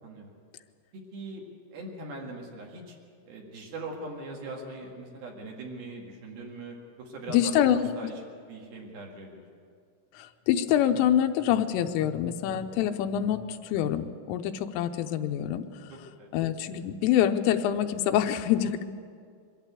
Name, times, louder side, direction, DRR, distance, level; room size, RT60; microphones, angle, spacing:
voice 1, 0.0-0.4 0.9-3.0 3.3-9.5 15.9-16.3, right 2 dB, 55° right, 0 dB, 3.5 m, -41 dB
voice 2, 7.3-7.8 8.0-8.1 10.2-15.7 16.3-18.8, left 10 dB, 85° left, 7 dB, 3.4 m, -26 dB
23.5 x 13.5 x 8.2 m, 2.2 s
omnidirectional pair, 5.7 m